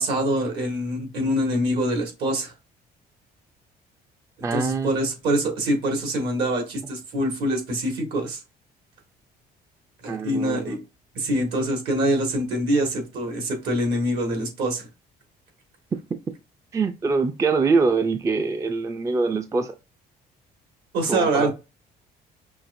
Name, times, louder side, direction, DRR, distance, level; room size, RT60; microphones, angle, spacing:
voice 1, 0.0-2.5 4.5-8.4 10.0-10.8 11.1-14.9 20.9-21.5, right 1 dB, 75° right, 1.8 m, -24 dB
voice 2, 4.4-5.0 10.1-10.8 16.7-19.7 21.1-21.5, right 4 dB, 20° right, 0.4 m, -24 dB
5.7 x 2.5 x 2.6 m
cardioid pair, 110°, 17 cm